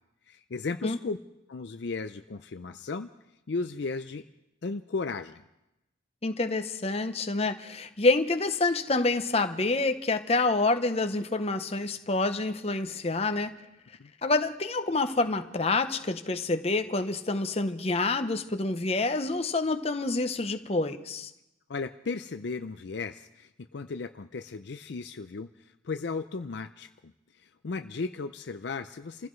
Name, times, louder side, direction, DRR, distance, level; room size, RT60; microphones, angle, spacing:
voice 1, 0.3-1.2 1.5-3.1 3.5-4.2 4.6-5.4 14.0-14.1 21.7-25.5 25.8-27.1 27.4-29.3, left 4 dB, 60° left, 0.5 m, -35 dB
voice 2, 6.2-13.5 14.2-21.3, left 3 dB, 30° left, 0.8 m, -27 dB
28.0 x 15.5 x 3.2 m
head